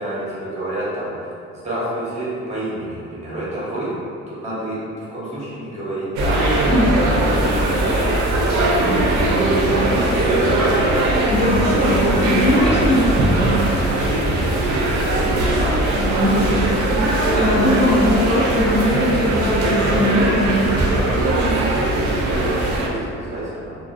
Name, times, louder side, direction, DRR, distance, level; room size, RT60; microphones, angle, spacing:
voice 1, 0.0-3.9 4.3-6.5 7.0-10.9 11.7-11.9 12.5-13.1 14.9-16.2 17.6-18.3 21.9-23.8, right 1 dB, 20° right, -9 dB, 1.1 m, -30 dB
sound 1, 6.2-22.9, right 1 dB, 65° right, 0.5 m, -19 dB
voice 2, 6.7-7.0 11.3-13.6 15.9-20.7, left 1 dB, 20° left, -8 dB, 0.7 m, -20 dB
2.3 x 2.2 x 2.4 m, 2.4 s
cardioid pair, 90°, 30 cm